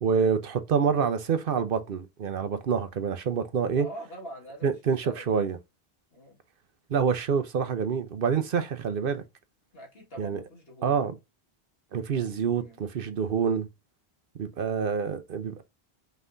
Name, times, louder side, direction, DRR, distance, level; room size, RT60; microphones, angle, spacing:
voice 1, 0.0-3.9 4.6-5.6 6.9-9.2 10.2-10.4 10.8-11.2 11.9-13.7 14.4-15.6, right 6 dB, 60° right, 0.8 m, -27 dB
voice 2, 3.7-4.7 5.0-5.4 6.1-6.4 9.7-11.0 12.5-12.8, right 1 dB, 70° left, 2.0 m, -44 dB
5.5 x 3.5 x 2.5 m
omnidirectional pair, 1.1 m